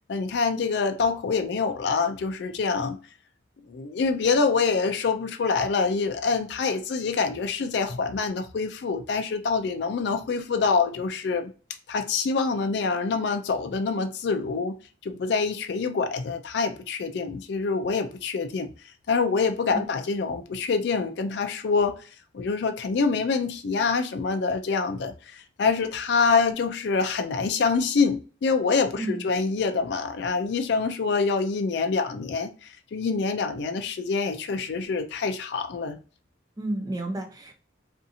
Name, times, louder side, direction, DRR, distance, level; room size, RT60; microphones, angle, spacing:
voice 1, 0.1-3.0 3.7-11.5 11.9-14.8 15.0-18.7 19.1-22.0 22.3-36.0, left 4 dB, 60° left, 0.4 m, -26 dB
voice 2, 36.6-37.6, right 1 dB, 20° right, 0.4 m, -31 dB
2.7 x 2.4 x 2.6 m
head